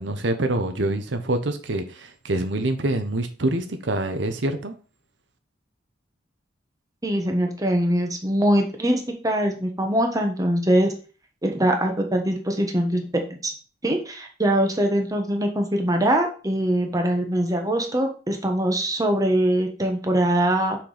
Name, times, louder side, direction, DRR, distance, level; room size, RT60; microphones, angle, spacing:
voice 1, 0.0-4.7, right 2 dB, 85° right, 7 dB, 1.0 m, -26 dB
voice 2, 7.0-10.9 11.4-13.0 13.4-13.5 13.8-20.8, right 1 dB, 20° right, 3 dB, 1.3 m, -22 dB
6.1 x 4.6 x 5.1 m, 0.36 s
head